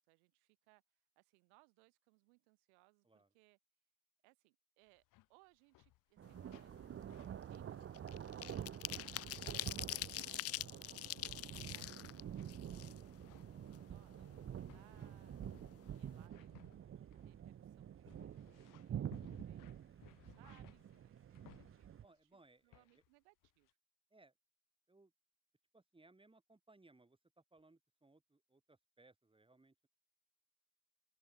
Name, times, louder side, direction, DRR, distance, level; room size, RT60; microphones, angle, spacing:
voice 1, 0.0-3.6 4.2-5.0 5.3-8.5 9.1-10.8 11.4-15.4 15.9-16.5 17.1-19.6 20.2-23.7, right 34 dB, 85° right, 3.9 m, -72 dB
sound 1, 4.9-5.3 5.5-6.2 6.5-6.8 7.1-8.5 8.8-9.2 9.6-10.0 10.6-22.2 22.7-23.1 23.4-23.7, left 18 dB, 70° left, 2.5 m, -66 dB
sound 2, 6.2-22.0, right 9 dB, 40° right, 0.9 m, -48 dB
sound 3, 6.4-6.6 6.9-13.4 13.7-13.8 14.1-15.1 15.4-15.6 15.9-16.2, left 14 dB, 45° left, 0.5 m, -45 dB
voice 2, 22.0-22.9 24.1-24.3 24.9-25.1 25.7-29.9, right 2 dB, 15° right, 5.4 m, -67 dB
open air
hypercardioid pair, 60°, 33 cm